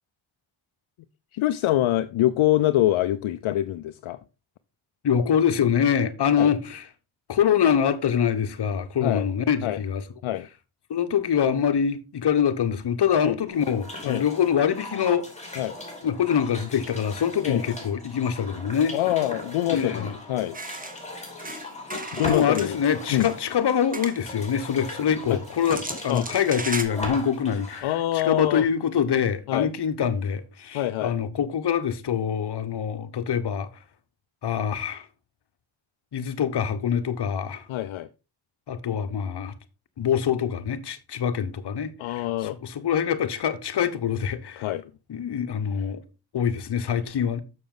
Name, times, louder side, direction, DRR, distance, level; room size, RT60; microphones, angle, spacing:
voice 1, 1.3-4.2 6.4-6.5 9.0-9.3 9.6-9.8 10.2-10.5 13.2-13.4 14.0-14.2 15.6-15.7 17.4-17.6 18.9-20.6 22.1-22.8 23.1-23.3 25.3-25.4 26.1-26.3 27.8-28.6 29.5-29.7 30.7-31.1 37.7-38.1 42.0-42.6 44.6-44.8, left 14 dB, 75° left, 0.6 m, -25 dB
voice 2, 5.0-6.8 7.3-10.0 10.9-15.3 16.0-19.0 19.7-20.1 22.2-33.7 34.4-35.1 36.1-37.7 38.7-39.5 40.0-44.7 45.1-46.0 46.3-47.4, left 8 dB, 55° left, 1.0 m, -25 dB
sound 1, 13.5-27.8, left 2 dB, 15° left, 3.0 m, -38 dB
sound 2, 20.5-21.0 21.4-22.7 23.1-23.5 23.9-24.5 25.1-26.8, right 2 dB, 15° right, 1.2 m, -36 dB
6.8 x 6.4 x 3.8 m
cardioid pair, 65°, 48 cm